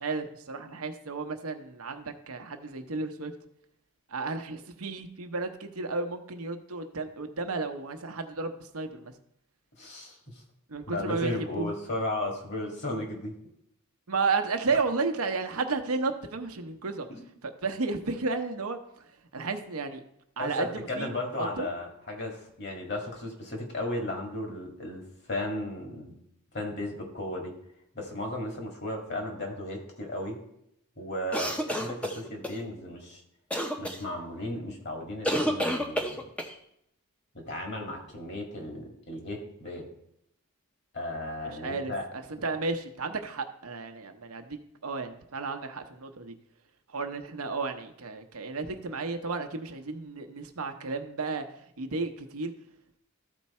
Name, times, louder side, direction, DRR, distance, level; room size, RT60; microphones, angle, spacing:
voice 1, 0.0-3.3 4.1-9.1 10.7-11.7 14.1-17.1 17.4-20.0 20.4-21.1 21.4-21.7 41.4-46.4 46.9-52.5, right 4 dB, 70° right, 7 dB, 0.8 m, -33 dB
voice 2, 9.8-10.4 10.9-13.3 17.1-17.3 20.4-26.1 26.5-27.5 27.9-30.4 31.0-33.2 33.8-36.2 37.3-39.9 40.9-42.0, left 1 dB, 50° left, 1 dB, 2.0 m, -35 dB
sound 1, 31.3-32.6 33.5-34.0 35.2-36.5, equal, 5° left, 0.6 m, -29 dB
13.5 x 4.6 x 4.2 m, 0.75 s
head